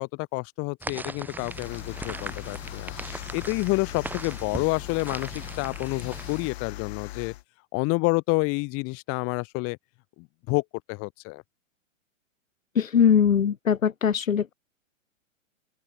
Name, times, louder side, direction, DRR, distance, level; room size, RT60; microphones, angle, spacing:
voice 1, 0.0-2.9 3.3-7.3 7.7-9.8 10.2-11.4, left 27 dB, 35° left, 2.6 m, -29 dB
sound 1, 0.8-6.5, right 2 dB, 5° right, 1.6 m, -39 dB
sound 2, 1.3-7.4, left 15 dB, 55° left, 2.1 m, -40 dB
voice 2, 12.7-14.5, left 7 dB, 85° left, 1.1 m, -21 dB
open air
hypercardioid pair, 115°, 39 cm